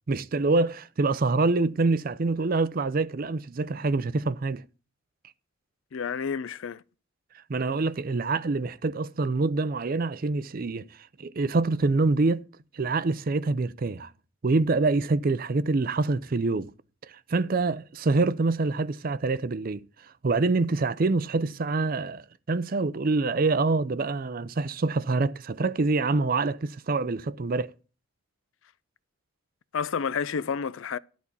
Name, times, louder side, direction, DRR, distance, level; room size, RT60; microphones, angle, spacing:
voice 1, 0.1-4.6 7.5-10.8 11.2-12.5 12.7-14.1 14.4-16.7 17.1-19.8 20.2-27.7, right 3 dB, 45° right, 0.5 m, -26 dB
voice 2, 5.9-6.8 29.7-31.0, left 6 dB, 70° left, 0.4 m, -30 dB
12.0 x 4.3 x 8.1 m
head